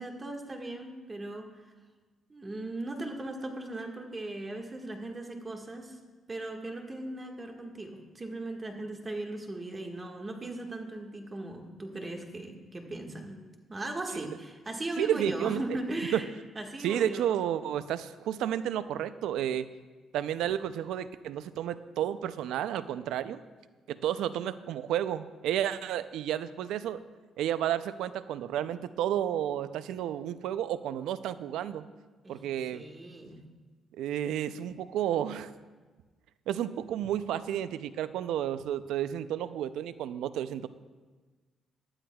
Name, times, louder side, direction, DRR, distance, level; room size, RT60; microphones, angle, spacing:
voice 1, 0.0-1.5 2.3-6.0 6.3-13.4 13.7-16.3 16.5-17.3 32.2-32.4 32.7-33.4, right 2 dB, 25° right, 2 dB, 1.6 m, -38 dB
voice 2, 15.0-15.8 16.1-16.2 16.8-19.7 20.1-23.4 23.9-27.0 27.4-31.8 32.3-32.8 34.0-35.5 36.5-40.7, right 10 dB, 85° right, 13 dB, 0.4 m, -31 dB
18.5 x 12.0 x 2.3 m, 1.3 s
cardioid pair, 90°, 0 cm